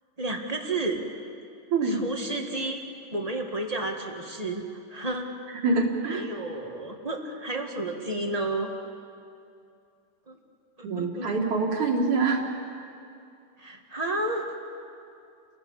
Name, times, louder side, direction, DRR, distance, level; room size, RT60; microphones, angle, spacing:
voice 1, 0.2-1.0 1.8-2.8 3.1-5.3 6.1-8.7 10.3-10.4 10.8-11.3 13.6-14.5, right 2 dB, 25° right, 2 dB, 0.9 m, -31 dB
voice 2, 1.7-2.0 5.6-6.2 10.8-12.4, right 3 dB, 70° right, -3 dB, 3.3 m, -25 dB
30.0 x 18.0 x 7.4 m, 2.5 s
omnidirectional pair, 3.6 m